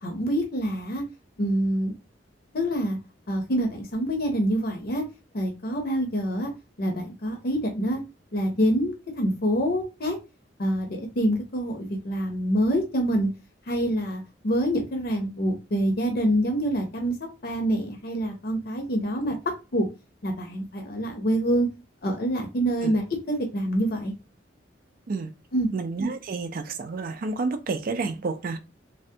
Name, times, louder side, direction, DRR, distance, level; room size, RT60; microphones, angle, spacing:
voice 1, 0.0-1.0 1.4-1.9 2.5-3.0 3.3-5.0 5.3-6.5 6.8-8.0 8.3-10.2 10.6-13.3 13.7-17.2 17.4-19.4 19.7-19.9 20.2-21.7 22.0-24.1 25.5-25.7, equal, 55° left, 0.6 m, -26 dB
voice 2, 25.7-28.6, right 3 dB, 50° right, 0.4 m, -30 dB
3.4 x 2.1 x 2.7 m
head